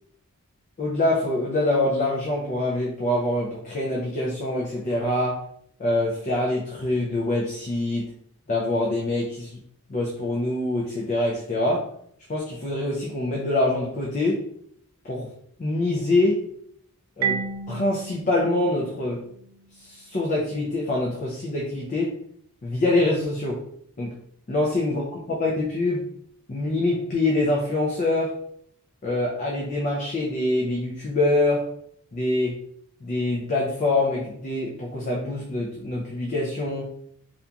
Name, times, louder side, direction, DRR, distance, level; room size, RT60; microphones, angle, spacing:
voice 1, 0.8-5.4 5.8-8.1 8.5-9.6 9.9-11.9 12.3-14.4 15.0-15.3 15.6-16.4 17.2-17.4 17.7-19.2 19.8-22.1 22.6-23.6 24.0-24.1 24.5-25.0 25.4-26.0 26.5-28.4 29.0-31.7 32.1-32.6 33.0-36.9, left 2 dB, 35° left, -3 dB, 0.4 m, -25 dB
Marimba xylophone, 17.2-19.9, right 6 dB, 65° right, 0.3 m, -32 dB
2.8 x 2.4 x 2.2 m, 0.68 s
head